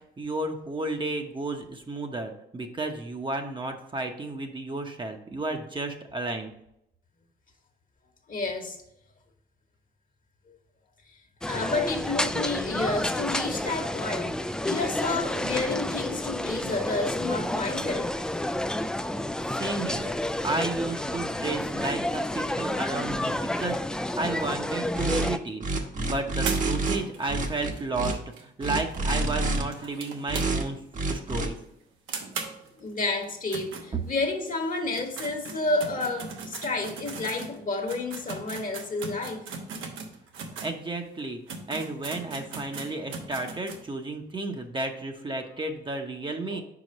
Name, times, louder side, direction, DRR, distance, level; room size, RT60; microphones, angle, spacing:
voice 1, 0.2-6.5 19.5-20.2 20.4-30.8 31.1-31.6 40.6-41.4 41.7-46.6, right 2 dB, 25° right, 4 dB, 0.9 m, -32 dB
voice 2, 8.3-8.8 11.4-18.1 32.8-39.4 46.5-46.6, left 3 dB, 40° left, 4 dB, 1.3 m, -30 dB
sound 1, 11.4-25.4, left 1 dB, 5° left, 0.3 m, -30 dB
sound 2, 24.9-25.3 25.6-27.0 27.3-28.1 28.6-29.6 30.3-30.6 30.9-31.5, right 2 dB, 40° right, 1.1 m, -27 dB
sound 3, 26.4-30.9 31.2-31.3 31.6-31.7 32.1-34.4 34.8-40.8 41.2-41.3 41.5-43.8, right 4 dB, 80° right, 1.1 m, -39 dB
5.0 x 4.9 x 5.2 m, 0.77 s
cardioid pair, 90°, 20 cm